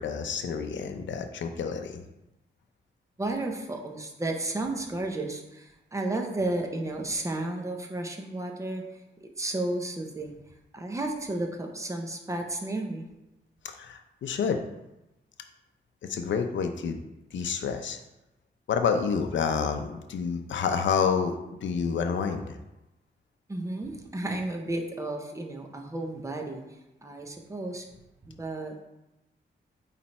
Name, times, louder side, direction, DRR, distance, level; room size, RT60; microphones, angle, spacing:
voice 1, 0.0-2.0 13.6-14.6 16.0-17.0 17.3-18.0 18.7-22.6, left 6 dB, 85° left, 6 dB, 0.6 m, -29 dB
voice 2, 3.2-8.8 9.2-10.4 10.7-13.1 23.5-26.6 27.0-27.9 28.2-28.8, right 2 dB, 15° right, 3 dB, 0.8 m, -32 dB
8.7 x 3.3 x 4.2 m, 0.95 s
wide cardioid pair, 155°, 19 cm